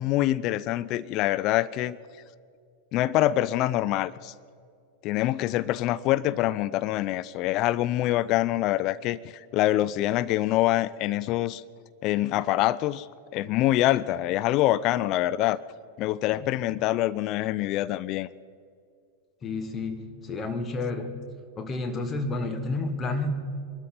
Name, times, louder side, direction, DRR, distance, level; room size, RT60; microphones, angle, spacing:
voice 1, 0.0-2.0 2.9-4.3 5.0-11.6 12.0-13.1 13.3-15.6 16.0-18.3, left 15 dB, 40° left, 16 dB, 0.3 m, -25 dB
voice 2, 19.4-21.2 21.6-23.3, left 3 dB, 25° left, 6 dB, 1.5 m, -30 dB
23.0 x 12.5 x 3.9 m, 2.3 s
figure-of-eight pair, 90°, 0 cm